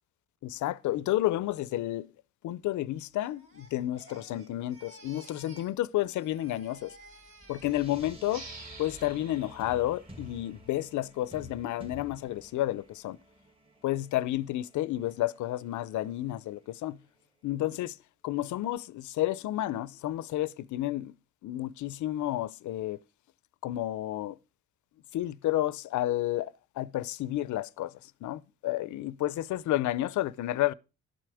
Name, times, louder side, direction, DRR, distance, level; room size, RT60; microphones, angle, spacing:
voice 1, 0.4-2.1 2.4-7.0 7.5-8.4 8.8-13.2 13.8-17.0 17.4-18.0 18.2-21.1 21.4-23.0 23.6-24.4 25.1-30.7, left 14 dB, 75° left, 0.6 m, -31 dB
Crying sobbing, 3.2-5.8 6.0-8.2 8.6-9.0, right 1 dB, 45° right, 2.9 m, -55 dB
sound 1, 6.9-17.3, right 1 dB, 20° right, 1.9 m, -53 dB
sound 2, 8.3-11.5, right 3 dB, 70° right, 4.1 m, -49 dB
11.5 x 7.7 x 4.8 m
cardioid pair, 90°, 30 cm